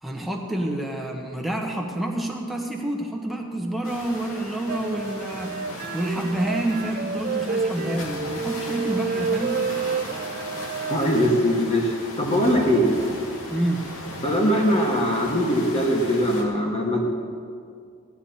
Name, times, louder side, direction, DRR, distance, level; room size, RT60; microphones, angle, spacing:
voice 1, 0.0-5.6 5.9-9.6 13.5-13.8, right 1 dB, ahead, 0 dB, 1.1 m, -28 dB
sound 1, 3.8-16.4, left 1 dB, 75° left, 2.0 m, -37 dB
sound 2, 4.7-11.1, right 5 dB, 40° right, 0.4 m, -29 dB
voice 2, 10.9-11.9 12.2-12.9 14.2-17.1, equal, 30° left, -1 dB, 1.5 m, -21 dB
16.0 x 11.0 x 4.3 m, 2.2 s
head